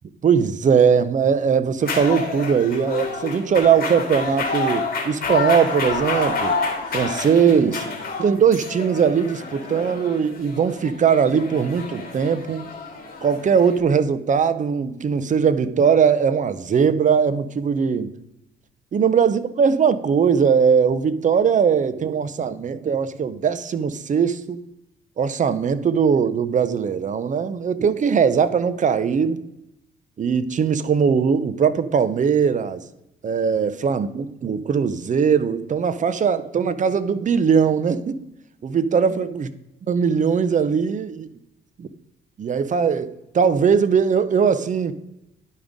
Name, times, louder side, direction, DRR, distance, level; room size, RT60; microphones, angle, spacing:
voice 1, 0.2-6.6 6.9-7.8 8.2-12.7 13.2-18.1 18.9-24.6 25.2-29.4 30.2-32.8 33.2-38.2 38.6-39.5 39.9-41.3 41.8-41.9 42.4-44.9, right 6 dB, 40° right, 0.7 m, -20 dB
sound 1, 1.8-13.8, left 4 dB, 50° left, 2.2 m, -29 dB
11.5 x 5.2 x 3.6 m
cardioid pair, 90°, 20 cm